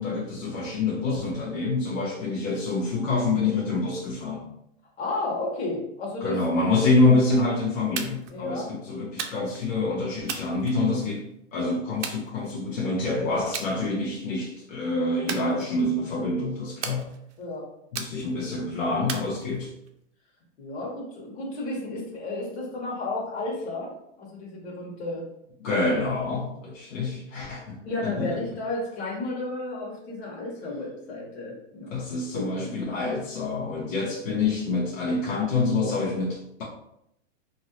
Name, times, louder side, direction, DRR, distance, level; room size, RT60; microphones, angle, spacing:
voice 1, 0.0-4.4 6.2-11.2 11.5-17.1 17.9-19.7 25.6-27.8 28.0-28.4 31.9-36.6, left 3 dB, 90° left, -4 dB, 0.9 m, -26 dB
voice 2, 5.0-6.4 8.3-8.7 17.4-17.7 20.6-23.9 24.2-25.2 27.8-32.0 32.3-32.7, left 2 dB, 55° left, -4 dB, 1.3 m, -32 dB
sound 1, 8.0-8.4 9.2-9.7 10.3-11.2 12.0-12.8 13.5-13.7 14.1-14.5 15.3-16.1 16.8-17.4 17.9-18.5 19.1-19.9, right 6 dB, 65° right, 0.6 m, -36 dB
2.9 x 2.7 x 2.7 m, 0.77 s
supercardioid pair, 170°, 38 cm